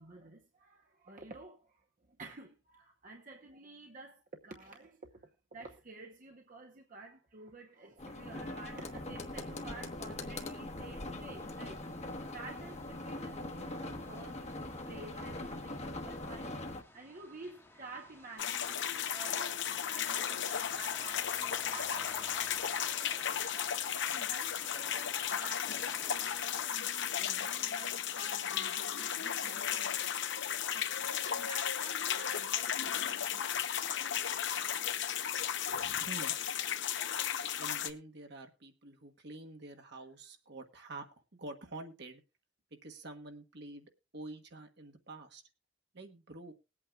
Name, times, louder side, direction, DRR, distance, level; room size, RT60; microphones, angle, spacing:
voice 1, 0.0-11.9 12.3-22.2 24.1-30.2 30.5-33.9, right 3 dB, 45° right, 0.9 m, -51 dB
sound 1, 8.0-16.8, left 2 dB, 35° left, 1.1 m, -42 dB
sound 2, 11.3-26.7, left 2 dB, 15° left, 1.1 m, -54 dB
sound 3, 18.4-37.9, left 9 dB, 65° left, 0.8 m, -35 dB
voice 2, 35.7-36.4 37.6-41.1 41.3-42.2 42.7-45.4 45.9-46.5, right 2 dB, 60° right, 1.4 m, -47 dB
21.0 x 8.5 x 2.4 m
head